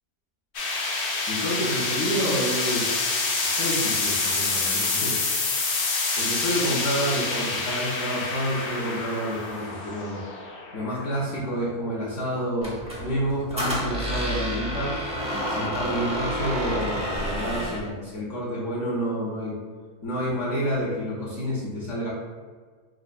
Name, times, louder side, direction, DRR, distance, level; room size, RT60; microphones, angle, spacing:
sound 1, 0.5-11.7, left 3 dB, 80° left, 0.5 m, -27 dB
voice 1, 1.3-3.0 3.4-5.2 6.1-10.2 10.7-14.9 15.5-19.6 20.0-22.1, equal, 55° left, -7 dB, 1.0 m, -29 dB
Squeak, 12.6-17.9, equal, 10° right, 0.4 m, -29 dB
5.9 x 2.1 x 2.4 m, 1.5 s
omnidirectional pair, 1.7 m